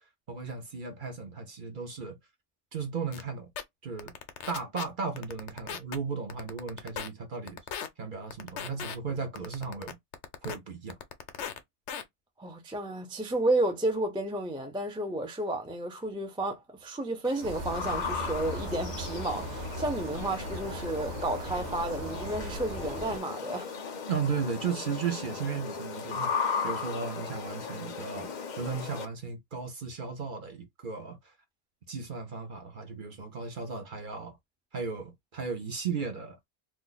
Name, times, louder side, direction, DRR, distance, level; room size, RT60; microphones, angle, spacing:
voice 1, 0.3-2.2 2.7-3.5 3.8-4.1 4.5-7.6 8.0-10.0 10.4-10.9 24.1-31.3 31.9-34.4 34.7-36.4, right 5 dB, 50° right, 0.8 m, -35 dB
sound 1, 3.1-3.2 3.6-3.7 4.0-4.8 5.2-6.0 6.3-7.1 7.5-7.9 8.3-9.0 9.4-10.6 10.9-11.6 11.9-12.0, left 8 dB, 80° left, 0.9 m, -37 dB
voice 2, 12.4-23.7, right 1 dB, 5° right, 0.4 m, -32 dB
sound 2, 17.2-29.1, left 5 dB, 50° left, 0.6 m, -37 dB
sound 3, 17.4-23.2, right 2 dB, 85° right, 0.9 m, -38 dB
2.5 x 2.4 x 3.8 m
omnidirectional pair, 1.2 m